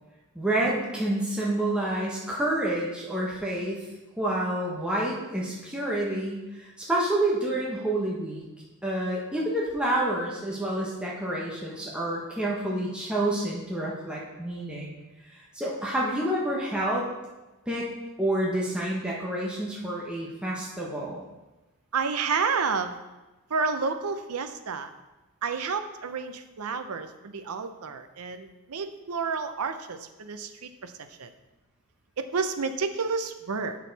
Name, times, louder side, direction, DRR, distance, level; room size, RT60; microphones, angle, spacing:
voice 1, 0.3-3.8 4.2-8.4 8.8-14.9 15.2-17.0 17.7-17.9 18.2-21.2, right 1 dB, 5° right, -5 dB, 1.0 m, -28 dB
voice 2, 21.9-22.9 23.5-24.9 25.4-30.9 31.2-31.3 32.2-33.8, right 5 dB, 90° right, 9 dB, 0.6 m, -30 dB
7.4 x 6.4 x 4.1 m, 1.1 s
head